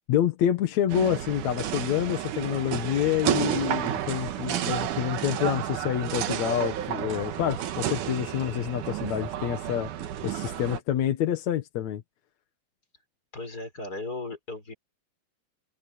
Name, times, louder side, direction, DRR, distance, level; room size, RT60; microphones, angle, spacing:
voice 1, 0.1-9.9 10.2-12.0, left 10 dB, 60° left, 2.4 m, -27 dB
sound 1, 0.9-10.8, right 11 dB, 70° right, 2.7 m, -31 dB
voice 2, 13.3-14.7, left 3 dB, 25° left, 5.4 m, -36 dB
omnidirectional pair, 3.9 m